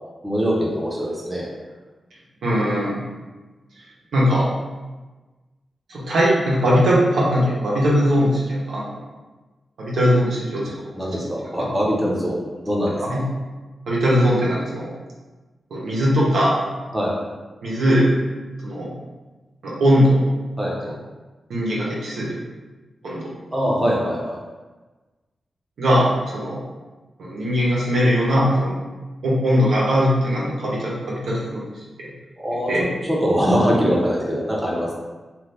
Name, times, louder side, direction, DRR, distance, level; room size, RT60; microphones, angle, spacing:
voice 1, 0.0-1.5 10.9-13.2 16.9-17.2 20.6-20.7 23.5-24.4 32.4-34.9, equal, 10° right, -5 dB, 0.6 m, -23 dB
voice 2, 2.4-3.0 4.1-4.5 5.9-8.9 9.8-10.7 13.0-13.2 13.9-14.9 15.7-16.6 17.6-18.1 18.6-18.9 19.6-20.2 20.8-20.9 21.5-22.4 23.0-23.2 25.8-26.1 26.3-26.6 27.2-28.8 29.2-31.7 32.7-32.9, equal, 85° right, -6 dB, 0.9 m, -20 dB
2.7 x 2.5 x 3.3 m, 1.2 s
wide cardioid pair, 135°, 0 cm